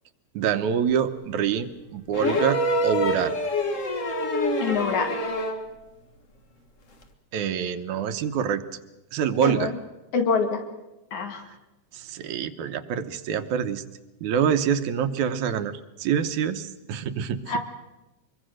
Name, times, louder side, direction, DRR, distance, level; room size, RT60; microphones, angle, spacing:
voice 1, 0.3-3.4 7.3-8.6 9.1-9.7 11.9-13.8 14.2-17.4, right 8 dB, 80° right, 9 dB, 2.4 m, -26 dB
sound 1, 2.1-5.7 7.0-7.1, left 1 dB, 35° left, 1.3 m, -26 dB
voice 2, 4.6-5.1 9.4-9.8 10.1-10.6 11.1-11.4 17.5-17.6, left 5 dB, 80° left, 5 dB, 3.5 m, -25 dB
24.0 x 23.0 x 6.4 m, 0.99 s
omnidirectional pair, 3.4 m